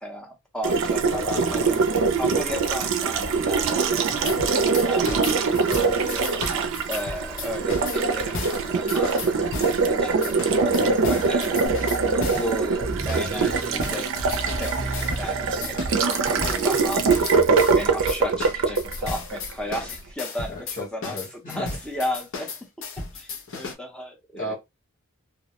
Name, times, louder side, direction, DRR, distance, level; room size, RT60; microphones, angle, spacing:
voice 1, 0.0-4.1 4.8-10.6 11.0-11.7 12.0-17.4 17.7-22.7 23.1-24.5, equal, 5° left, 0.6 m, -35 dB
Water tap faucet, 0.6-19.8, right 4 dB, 60° right, 0.4 m, -23 dB
voice 2, 1.1-1.7 4.1-4.4 5.7-5.9 10.5-11.1 11.5-11.8 20.5-21.7 24.3-24.5, left 2 dB, 35° left, 0.9 m, -35 dB
sound 1, 4.2-9.8 10.2-12.6 13.1-13.3 13.8-15.3 15.6-23.7, left 4 dB, 60° left, 0.6 m, -35 dB
sound 2, 11.7-17.3, right 2 dB, 20° right, 0.9 m, -34 dB
2.3 x 2.1 x 2.8 m
head